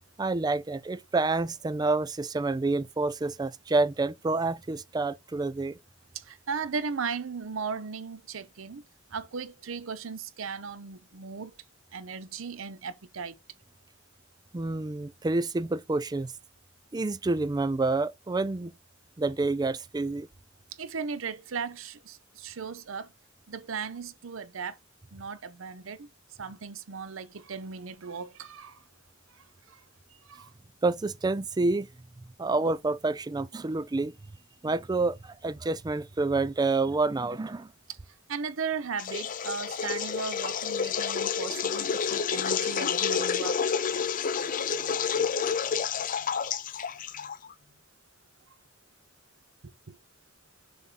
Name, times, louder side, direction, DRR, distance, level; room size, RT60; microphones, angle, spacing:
voice 1, 0.2-5.8 14.5-16.3 16.9-18.7 19.2-20.3 30.8-31.9 32.2-34.1 34.6-37.7, right 3 dB, 20° right, 0.4 m, -28 dB
voice 2, 6.3-8.8 9.1-11.5 11.9-13.3 20.8-23.1 23.5-24.8 25.1-26.1 26.4-28.8 30.3-30.5 38.3-43.6 49.9-50.0, right 5 dB, 75° right, 0.7 m, -36 dB
sound 1, 39.0-47.5, left 6 dB, 40° left, 0.5 m, -29 dB
7.0 x 3.6 x 4.0 m
head